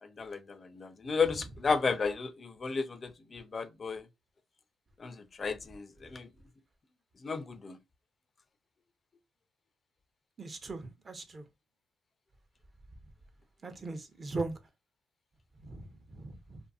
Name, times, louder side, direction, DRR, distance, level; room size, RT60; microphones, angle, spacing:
voice 1, 0.0-4.1 5.0-6.3 7.2-7.8, left 5 dB, 40° left, 0.3 m, -33 dB
voice 2, 10.4-11.4 13.6-14.5 15.7-16.6, right 3 dB, 35° right, 0.6 m, -39 dB
2.5 x 2.5 x 2.3 m
cardioid pair, 90°, 0 cm